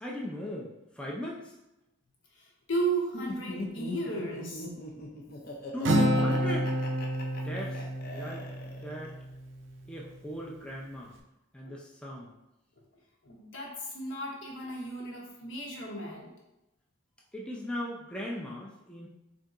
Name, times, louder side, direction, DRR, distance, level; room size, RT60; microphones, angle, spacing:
voice 1, 0.0-1.5 5.7-6.7 7.4-8.5 8.8-9.1 9.9-11.1 11.5-12.3 17.3-19.1, left 1 dB, 5° left, -3 dB, 0.4 m, -38 dB
voice 2, 2.4-4.7 11.6-11.7 13.2-16.3, right 2 dB, 75° left, -2 dB, 1.0 m, -35 dB
Laughter, 3.1-9.1, left 2 dB, 50° left, 0.6 m, -40 dB
Acoustic guitar, 5.8-9.5, right 1 dB, 75° right, 0.5 m, -29 dB
3.4 x 2.7 x 3.7 m, 0.91 s
head